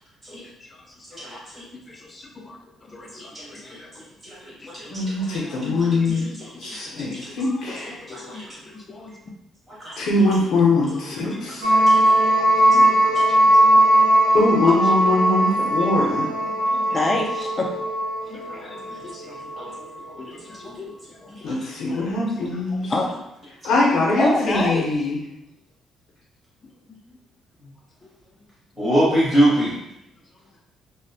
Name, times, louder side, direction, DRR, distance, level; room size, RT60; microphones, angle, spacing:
voice 1, 0.4-1.4 1.9-4.0 4.6-4.7 5.1-6.6 7.0-9.2 10.1-10.3 11.1-13.4 14.8-14.9 15.5-17.8 18.2-19.8 20.2-21.6 21.9-23.2 24.2-24.9 28.0-28.1, left 2 dB, 20° left, 0 dB, 0.3 m, -33 dB
voice 2, 1.2-1.6 3.3-3.5 4.2-5.0 5.5-5.6 7.1-7.4 7.8-8.4 9.8-9.9 18.5-18.6 19.8-20.2 20.6-20.7 28.8-29.7, right 1 dB, 10° right, -9 dB, 0.8 m, -23 dB
voice 3, 4.9-6.3 6.6-8.0 10.0-11.7 14.3-16.3 21.4-22.9 23.6-25.2, left 2 dB, 75° left, -4 dB, 0.5 m, -22 dB
sound 1, 11.6-19.7, right 1 dB, 80° right, 0.6 m, -19 dB
2.4 x 2.0 x 2.6 m, 0.84 s
cardioid pair, 175°, 0 cm